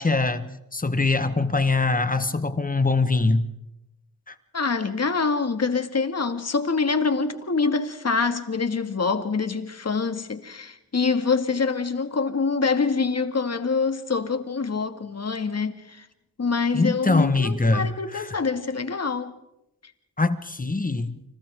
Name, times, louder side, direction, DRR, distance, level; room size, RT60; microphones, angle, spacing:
voice 1, 0.0-3.4 4.3-4.4 16.7-18.2 20.2-21.2, left 3 dB, 25° left, 1.4 m, -23 dB
voice 2, 4.5-16.1 16.4-19.3, left 4 dB, 50° left, 2.1 m, -25 dB
30.0 x 26.5 x 3.7 m
cardioid pair, 80°, 34 cm